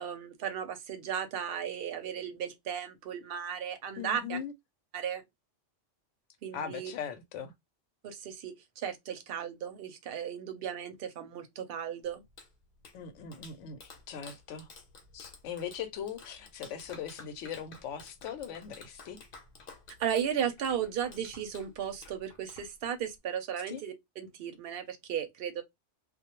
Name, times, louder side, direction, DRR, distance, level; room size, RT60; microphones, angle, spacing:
voice 1, 0.0-4.4 4.9-5.2 6.4-6.9 8.0-12.2 20.0-25.6, right 8 dB, 60° right, 0.7 m, -35 dB
voice 2, 4.0-4.5 6.5-7.5 12.9-14.7 15.1-19.2 23.7-23.8, left 8 dB, 80° left, 0.9 m, -40 dB
Clapping, 12.0-23.2, left 3 dB, 55° left, 0.7 m, -53 dB
2.2 x 2.0 x 2.9 m
omnidirectional pair, 1.2 m